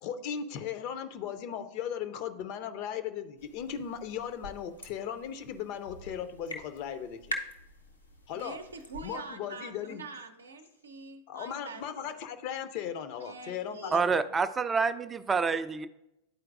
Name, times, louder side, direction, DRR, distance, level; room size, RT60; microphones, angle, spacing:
voice 1, 0.0-7.4 8.3-8.6 9.0-10.0 11.3-14.2, left 8 dB, 45° left, 10 dB, 0.5 m, -37 dB
sound 1, 3.4-9.2, left 1 dB, 80° left, 0.7 m, -44 dB
voice 2, 8.3-12.2 13.1-14.0, right 3 dB, 75° right, 7 dB, 0.6 m, -45 dB
voice 3, 13.9-15.9, right 5 dB, 15° right, 11 dB, 0.3 m, -27 dB
11.0 x 4.5 x 2.5 m, 0.88 s
figure-of-eight pair, 90°, 0 cm